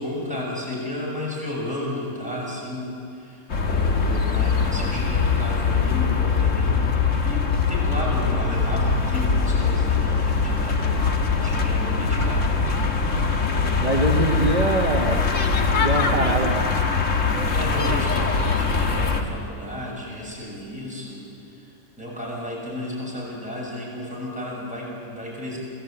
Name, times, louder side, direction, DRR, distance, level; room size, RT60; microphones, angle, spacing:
voice 1, 0.0-12.7 17.5-25.6, left 1 dB, 5° right, -4 dB, 7.0 m, -33 dB
sound 1, 3.5-19.2, left 4 dB, 70° left, 1.8 m, -22 dB
voice 2, 13.8-15.3 15.8-16.7, right 2 dB, 30° right, -1 dB, 1.5 m, -23 dB
27.0 x 18.0 x 8.9 m, 2.7 s
omnidirectional pair, 1.4 m